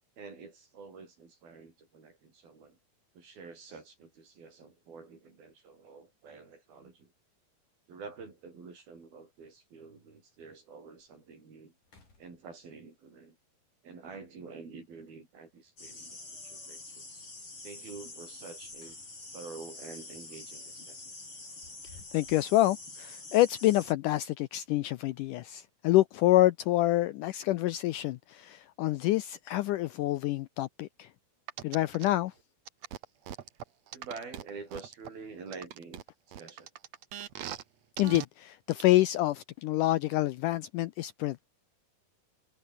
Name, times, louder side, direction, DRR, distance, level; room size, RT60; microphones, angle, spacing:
voice 1, 0.2-2.8 3.1-7.1 7.9-11.7 12.2-13.4 13.8-17.2 17.6-19.0 19.3-21.1 33.9-36.0 36.4-36.7, right 4 dB, 75° right, 8.5 m, -48 dB
sound 1, 6.0-6.1 7.9-8.0 8.4-8.5 8.7-9.3 9.8-9.9 10.5-10.6 11.0-11.3 11.8-12.9 15.0-15.6 18.4-19.4 19.8-20.0 21.3-22.6, left 3 dB, 60° left, 9.2 m, -60 dB
sound 2, 15.8-23.9, left 2 dB, 35° left, 9.0 m, -46 dB
voice 2, 22.1-31.1 31.6-32.3 38.0-41.5, left 16 dB, 80° left, 1.9 m, -27 dB
sound 3, 31.5-32.1 32.7-35.1 35.5-37.6 38.0-38.3 38.7-38.8, right 10 dB, 55° right, 2.3 m, -40 dB
omnidirectional pair, 4.3 m